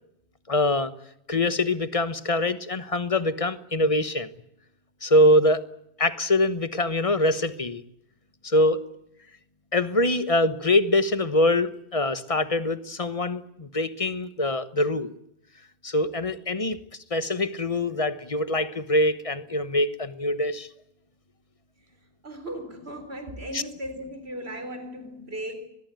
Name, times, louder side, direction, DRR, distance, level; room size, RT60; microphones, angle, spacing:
voice 1, 0.5-0.9 1.3-4.3 5.0-5.6 6.0-7.8 8.4-8.8 9.7-15.1 15.8-16.8 17.1-20.7 23.5-23.6, left 1 dB, 30° left, 1.2 m, -24 dB
voice 2, 22.2-25.7, equal, 65° right, 4.3 m, -37 dB
23.5 x 21.0 x 9.1 m
omnidirectional pair, 1.1 m